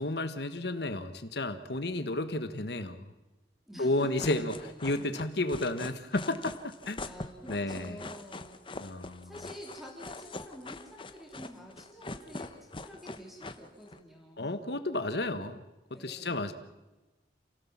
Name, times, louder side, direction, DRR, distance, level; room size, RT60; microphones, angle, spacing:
voice 1, 0.0-3.0 3.8-4.5 4.8-6.5 6.9-7.0 7.5-8.0 8.8-9.3 14.4-15.6 16.0-16.5, left 2 dB, 65° left, 9 dB, 1.3 m, -32 dB
voice 2, 3.7-5.1 7.0-8.6 9.2-14.5 15.9-16.4, equal, ahead, -1 dB, 4.0 m, -48 dB
sound 1, 4.0-14.0, left 2 dB, 30° left, 1.1 m, -43 dB
28.5 x 17.0 x 7.4 m, 1.1 s
head